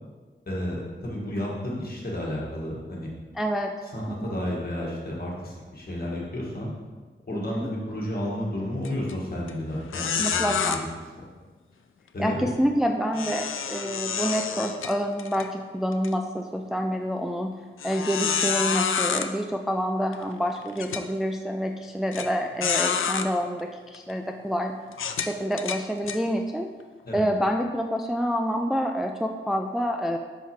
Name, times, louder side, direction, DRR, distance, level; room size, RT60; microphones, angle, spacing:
voice 1, 0.5-3.1 3.9-6.7 7.3-10.9 12.1-12.5 27.0-27.2, left 1 dB, 50° left, -4 dB, 1.6 m, -32 dB
voice 2, 3.4-3.7 4.1-4.4 7.3-7.7 10.2-10.9 12.2-17.5 17.8-24.7 25.2-26.7 27.1-30.2, equal, ahead, 4 dB, 0.3 m, -27 dB
sound 1, 8.8-9.1 9.5-9.6 9.9-10.8 13.1-15.5 15.9-16.1 16.7-16.8 17.8-19.3 20.1-20.2 20.8-21.0 22.1-22.3 22.6-23.3 23.9-24.1 24.9-26.2, left 6 dB, 90° left, 0.4 m, -28 dB
5.7 x 4.7 x 4.3 m, 1.4 s
wide cardioid pair, 105°, 20 cm